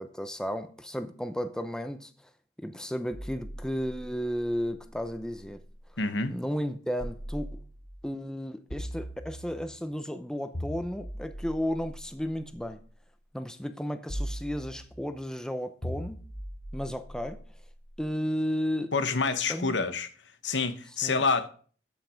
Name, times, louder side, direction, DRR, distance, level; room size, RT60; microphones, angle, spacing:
voice 1, 0.0-2.3 2.6-5.6 6.3-7.6 8.0-12.8 13.3-16.2 16.7-17.4 18.0-18.9 19.5-19.8 21.0-21.2, equal, 5° left, 0.7 m, -33 dB
sound 1, 3.1-5.9 7.0-8.0 8.7-9.8 10.5-12.8 14.1-15.2 15.8-18.0, equal, 40° left, 3.0 m, -40 dB
voice 2, 6.0-6.3 18.9-20.1 20.4-21.5, left 4 dB, 90° left, 1.1 m, -27 dB
13.5 x 5.8 x 5.1 m
head